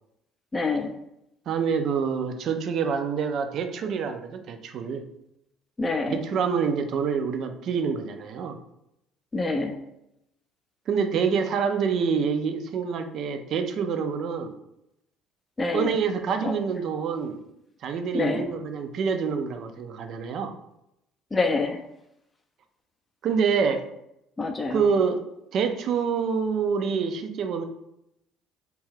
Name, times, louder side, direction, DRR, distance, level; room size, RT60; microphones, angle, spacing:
voice 1, 0.5-1.0 5.8-6.2 9.3-9.8 15.6-15.9 16.4-16.5 18.1-18.5 21.3-21.8 24.4-24.9, left 3 dB, 25° left, 4 dB, 0.4 m, -26 dB
voice 2, 1.5-5.0 6.1-8.6 10.9-14.6 15.7-17.4 17.8-20.5 23.2-23.9 24.7-25.2 25.5-27.6, right 6 dB, 55° right, 7 dB, 0.3 m, -26 dB
2.6 x 2.3 x 3.1 m, 0.82 s
hypercardioid pair, 55°, 0 cm